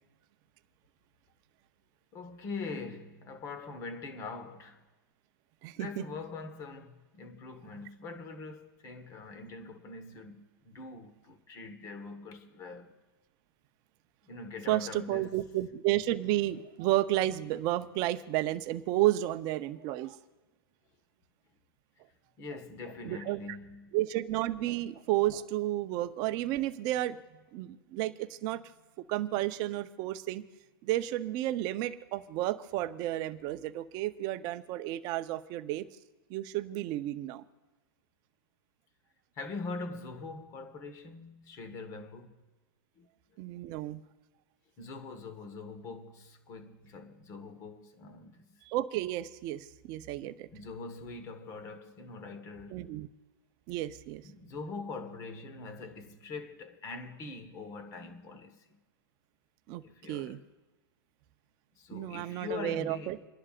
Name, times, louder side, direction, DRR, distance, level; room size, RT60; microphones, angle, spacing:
voice 1, 2.1-4.8 5.8-13.0 14.3-15.4 22.4-24.0 39.3-42.4 42.9-43.1 44.8-48.6 50.5-53.0 54.2-58.8 59.8-60.5 61.7-63.3, left 4 dB, 25° left, 1.4 m, -43 dB
voice 2, 14.7-20.2 23.0-23.4 23.9-27.2 27.5-28.6 29.0-30.4 30.8-35.8 36.3-37.4 43.4-44.0 48.7-50.5 52.7-53.1 53.7-54.2 59.7-59.8 60.1-60.4 61.9-63.2, right 15 dB, 30° right, 0.7 m, -32 dB
28.5 x 11.0 x 2.5 m
hypercardioid pair, 140°, 12 cm